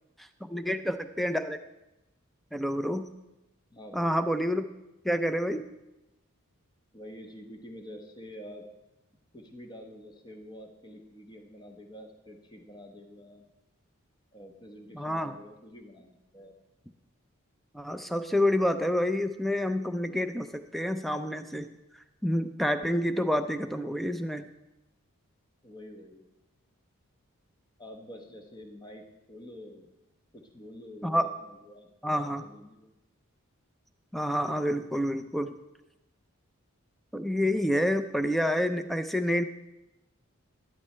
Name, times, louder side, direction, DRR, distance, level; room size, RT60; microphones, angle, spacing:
voice 1, 0.4-1.6 2.5-3.1 3.9-4.6 5.0-5.7 14.9-15.3 17.7-21.7 22.2-24.5 31.0-31.3 32.0-32.4 34.1-35.5 37.1-39.4, equal, ahead, 9 dB, 0.4 m, -28 dB
voice 2, 3.7-4.1 6.9-8.6 9.3-13.5 14.3-16.5 18.8-18.9 25.6-26.2 27.8-29.9 30.3-32.9, equal, 20° left, 4 dB, 0.9 m, -47 dB
11.5 x 10.5 x 3.3 m, 0.97 s
head